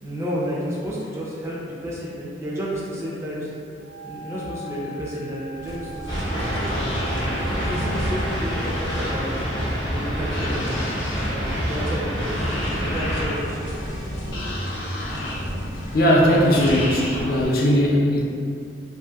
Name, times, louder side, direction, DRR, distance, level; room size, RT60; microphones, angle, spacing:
voice 1, 0.0-3.5 4.0-6.9 7.4-13.7, equal, 15° right, -6 dB, 0.4 m, -31 dB
Wind instrument woodwind instrument, 3.8-9.1, right 4 dB, 75° right, 0.8 m, -40 dB
sound 1, 5.6-17.4, left 1 dB, 85° left, 0.6 m, -32 dB
sound 2, 6.1-13.2, equal, 25° left, 0.7 m, -27 dB
voice 2, 15.9-18.2, equal, 50° left, -2 dB, 0.4 m, -18 dB
2.7 x 2.5 x 2.3 m, 2.4 s
head